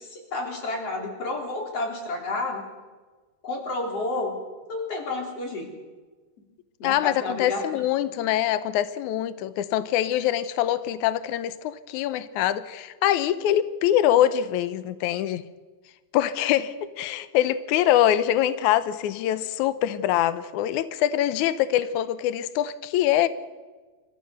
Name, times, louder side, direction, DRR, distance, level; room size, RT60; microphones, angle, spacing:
voice 1, 0.0-2.6 3.4-4.4 4.7-5.7 6.8-7.8, left 2 dB, 40° left, 1 dB, 4.6 m, -30 dB
voice 2, 6.8-15.5 16.1-23.3, left 12 dB, 90° left, 13 dB, 1.7 m, -24 dB
28.5 x 14.5 x 6.7 m, 1.4 s
omnidirectional pair, 4.5 m